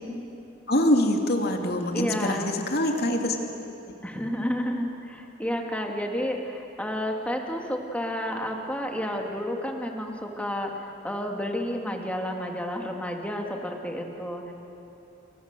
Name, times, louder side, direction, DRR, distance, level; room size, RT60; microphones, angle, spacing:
voice 1, 0.7-3.4, left 1 dB, 55° left, 3 dB, 2.6 m, -24 dB
voice 2, 1.9-2.5 4.0-14.5, equal, 5° left, 2 dB, 2.3 m, -31 dB
29.0 x 24.0 x 6.9 m, 2.8 s
head